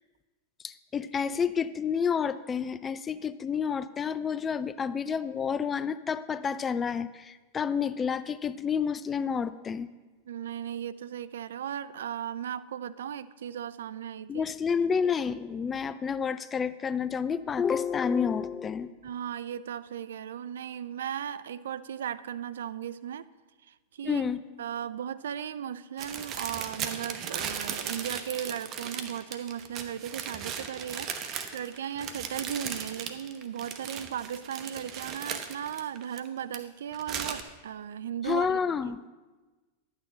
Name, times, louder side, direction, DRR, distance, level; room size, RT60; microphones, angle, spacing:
voice 1, 0.6-9.9 14.3-18.9 24.0-24.4 38.2-39.0, left 6 dB, 20° left, 15 dB, 0.4 m, -29 dB
voice 2, 10.3-14.5 19.0-23.3 23.6-24.2 24.6-38.8, right 9 dB, 70° right, 16 dB, 0.4 m, -36 dB
sound 1, 26.0-36.6 36.9-37.4, right 7 dB, 40° right, 0.9 m, -37 dB
11.5 x 8.8 x 3.9 m, 1.2 s
hypercardioid pair, 95°, 0 cm